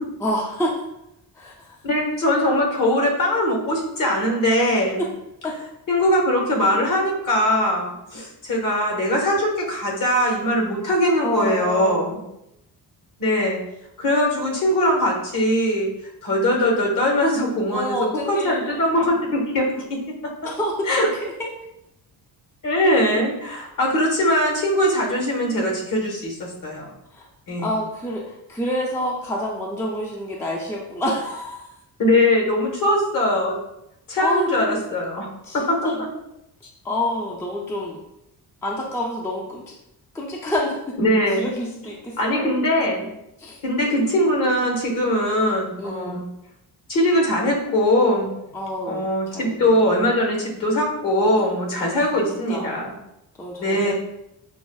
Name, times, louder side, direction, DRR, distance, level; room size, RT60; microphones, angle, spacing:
voice 1, 0.2-0.7 1.3-1.8 5.0-5.1 5.4-5.6 11.2-12.2 17.7-18.8 20.4-21.5 27.1-27.3 27.6-31.6 34.2-34.8 35.4-36.1 36.8-38.0 38.6-39.7 40.1-41.0 41.4-42.5 43.4-43.6 45.8-46.2 48.5-49.7 51.8-52.2 52.5-52.8 53.4-53.9, left 1 dB, 10° left, -2 dB, 0.3 m, -28 dB
voice 2, 1.8-5.0 5.9-12.2 13.2-13.6 14.0-15.9 16.2-19.8 20.9-21.1 22.6-26.9 27.5-27.7 32.0-33.5 34.1-35.3 35.5-35.9 41.0-41.5 42.2-43.1 43.6-46.3 46.9-48.3 48.8-52.9 53.6-53.9, left 1 dB, 55° left, 0 dB, 1.2 m, -21 dB
5.9 x 2.0 x 2.3 m, 0.85 s
cardioid pair, 135°, 40 cm